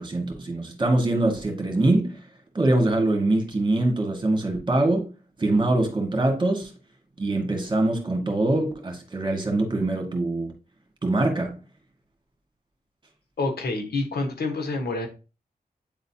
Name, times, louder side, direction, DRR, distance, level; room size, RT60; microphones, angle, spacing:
voice 1, 0.0-2.2 2.5-5.1 5.4-6.7 7.2-10.5 11.0-11.6, right 2 dB, 30° right, 1.9 m, -23 dB
voice 2, 13.4-15.1, left 3 dB, 90° left, 1.3 m, -27 dB
8.9 x 3.9 x 2.8 m
wide cardioid pair, 75°, 16 cm